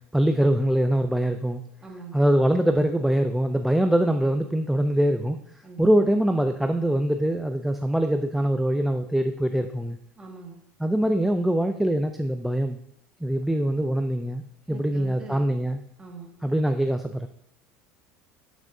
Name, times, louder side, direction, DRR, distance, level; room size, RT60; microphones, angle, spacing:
voice 1, 0.1-1.6 2.1-5.4 5.8-10.0 10.8-12.8 13.2-14.4 14.7-15.8 16.4-17.3, right 1 dB, 5° right, 6 dB, 0.4 m, -23 dB
voice 2, 1.8-2.2 5.6-5.8 10.2-10.6 14.7-15.5 16.0-16.3, right 2 dB, 20° right, 1 dB, 1.8 m, -42 dB
12.0 x 6.1 x 2.7 m, 0.73 s
supercardioid pair, 125°, 5 cm